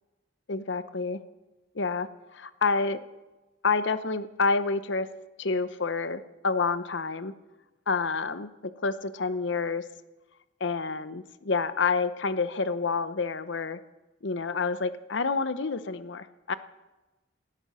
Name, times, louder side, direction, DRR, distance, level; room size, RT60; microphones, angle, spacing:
voice 1, 0.5-1.2 1.7-3.0 3.6-5.1 5.4-7.3 7.9-8.5 8.8-9.9 10.6-13.8 14.2-16.5, left 4 dB, 70° left, 13 dB, 0.8 m, -28 dB
18.5 x 13.5 x 5.6 m, 1.1 s
head